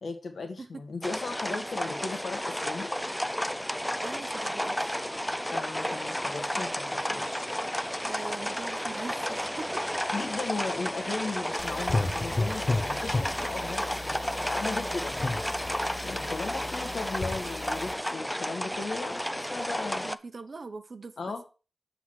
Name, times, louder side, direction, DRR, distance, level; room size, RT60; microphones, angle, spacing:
voice 1, 0.0-2.9 5.5-7.5 10.1-15.1 16.0-20.0 21.2-21.4, left 3 dB, 75° left, 1.5 m, -36 dB
sound 1, 1.0-20.1, equal, 5° left, 0.3 m, -32 dB
voice 2, 1.4-1.9 4.0-4.9 8.0-9.8 19.9-21.5, right 3 dB, 50° right, 0.8 m, -42 dB
sound 2, 11.6-17.9, left 2 dB, 40° left, 0.7 m, -33 dB
7.7 x 4.0 x 6.2 m
wide cardioid pair, 125°, 0 cm